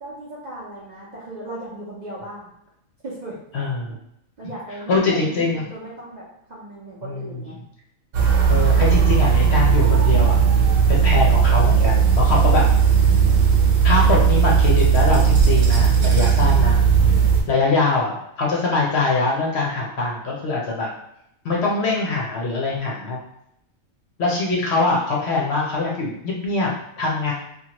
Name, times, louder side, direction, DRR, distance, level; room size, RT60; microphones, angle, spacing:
voice 1, 0.0-2.5 3.0-3.4 4.4-7.5 17.0-17.4, right 2 dB, 50° right, -7 dB, 0.5 m, -36 dB
voice 2, 3.5-4.0 4.9-5.6 7.0-7.3 8.5-10.4 10.9-12.6 13.8-16.8 17.5-20.9 21.4-23.2 24.2-27.3, left 3 dB, 60° left, -3 dB, 0.8 m, -23 dB
sound 1, 8.1-17.4, right 6 dB, 85° right, 1.1 m, -16 dB
3.0 x 2.3 x 2.8 m, 0.76 s
omnidirectional pair, 1.4 m